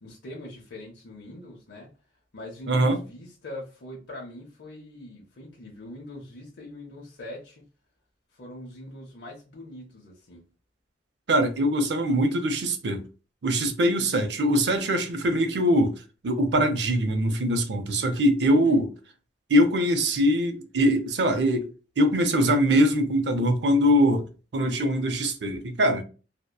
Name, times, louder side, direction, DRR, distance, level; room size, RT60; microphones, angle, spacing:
voice 1, 0.0-1.9 2.3-7.6 8.3-10.5 14.0-14.1 18.4-18.8, left 1 dB, 80° left, 0.6 m, -42 dB
voice 2, 2.7-3.0 11.3-13.0 13.4-15.9 16.2-18.9 19.5-24.3 24.5-26.0, equal, 80° right, 0.5 m, -22 dB
2.7 x 2.1 x 2.2 m
head